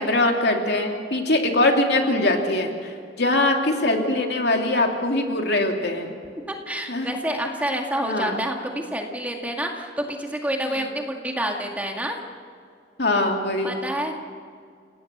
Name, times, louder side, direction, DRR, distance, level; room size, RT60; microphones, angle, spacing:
voice 1, 0.0-6.1 6.9-7.1 8.0-8.4 10.6-10.8 13.0-13.7, left 2 dB, 65° left, 2 dB, 2.8 m, -22 dB
voice 2, 6.5-12.2 13.6-14.1, right 1 dB, 10° right, 1 dB, 2.1 m, -28 dB
30.0 x 18.0 x 6.8 m, 2.3 s
head